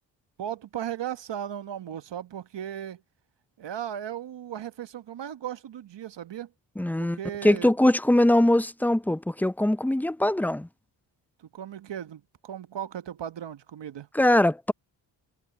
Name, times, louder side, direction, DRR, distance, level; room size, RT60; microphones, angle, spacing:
voice 1, 0.4-3.0 3.6-6.5 7.0-7.7 11.4-14.1, right 10 dB, 60° right, 1.2 m, -36 dB
voice 2, 6.8-7.2 7.4-10.7 14.1-14.7, left 1 dB, 5° left, 0.6 m, -22 dB
supercardioid pair, 45°, 49 cm